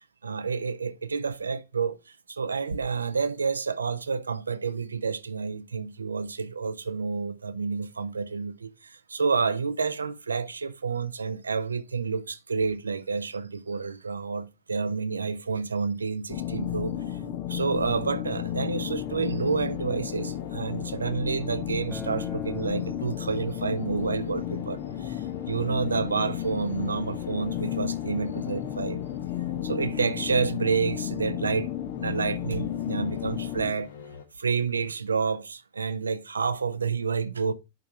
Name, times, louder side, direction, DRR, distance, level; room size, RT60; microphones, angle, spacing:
voice 1, 0.2-2.0 2.3-17.2 17.5-29.0 29.6-31.7 32.0-33.9 34.4-37.5, right 5 dB, 75° right, 0.6 m, -29 dB
sound 1, 16.3-33.7, left 11 dB, 40° left, 0.8 m, -33 dB
sound 2, 17.5-34.3, left 6 dB, 60° left, 1.0 m, -47 dB
Acoustic guitar, 21.9-27.1, left 1 dB, 15° left, 0.8 m, -46 dB
10.5 x 3.6 x 4.5 m
figure-of-eight pair, 90°, 0 cm